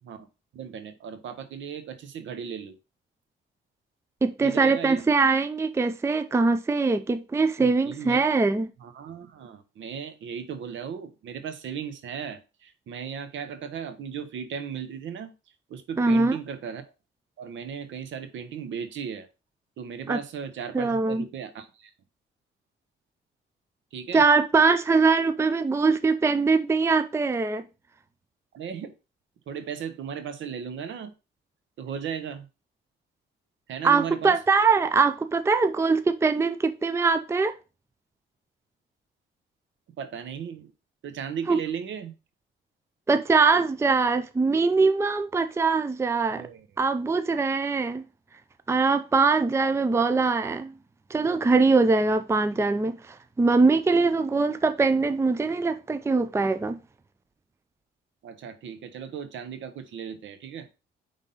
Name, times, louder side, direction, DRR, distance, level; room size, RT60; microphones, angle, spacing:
voice 1, 0.5-2.8 4.4-5.1 7.6-8.2 8.8-15.3 15.7-16.8 17.4-19.3 19.8-21.9 23.9-24.2 28.5-28.9 29.5-31.1 31.8-32.5 33.7-34.4 40.0-40.7 41.0-42.1 46.3-46.7 58.2-60.7, right 7 dB, 70° right, 1.1 m, -36 dB
voice 2, 4.2-8.7 16.0-16.4 20.1-20.2 20.7-21.2 24.1-27.6 33.8-37.6 41.5-41.6 43.1-46.4 46.8-48.0 48.7-50.7 51.1-56.8, right 4 dB, 15° right, 0.5 m, -22 dB
5.4 x 3.6 x 5.6 m
cardioid pair, 90°, 20 cm